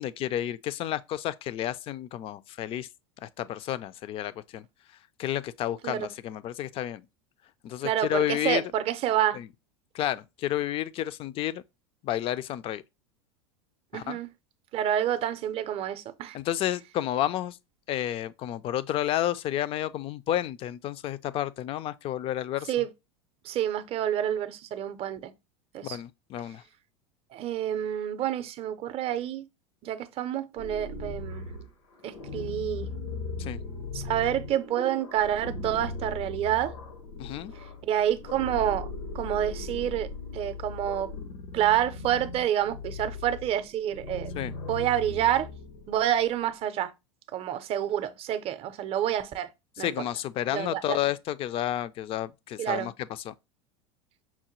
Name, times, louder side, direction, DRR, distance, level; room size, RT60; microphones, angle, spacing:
voice 1, 0.0-2.9 3.2-4.7 5.2-7.1 7.6-8.6 9.3-9.5 9.9-11.6 12.0-12.8 13.9-14.2 16.3-17.6 17.9-22.7 25.8-26.6 33.4-33.6 37.2-37.5 44.3-44.6 49.8-53.3, left 12 dB, 40° left, 0.4 m, -31 dB
voice 2, 7.8-9.4 13.9-14.3 14.7-16.4 22.7-22.9 23.4-25.3 25.7-26.0 27.3-29.5 29.8-31.5 32.0-32.9 33.9-36.7 37.8-38.9 39.1-41.1 41.5-44.3 44.7-45.5 45.9-46.9 47.3-49.5 49.8-49.9 50.5-51.0 52.6-52.9, right 11 dB, 40° right, 0.5 m, -28 dB
sound 1, 30.6-46.4, left 3 dB, 90° left, 1.0 m, -38 dB
5.7 x 2.2 x 3.0 m
hypercardioid pair, 100°, 15 cm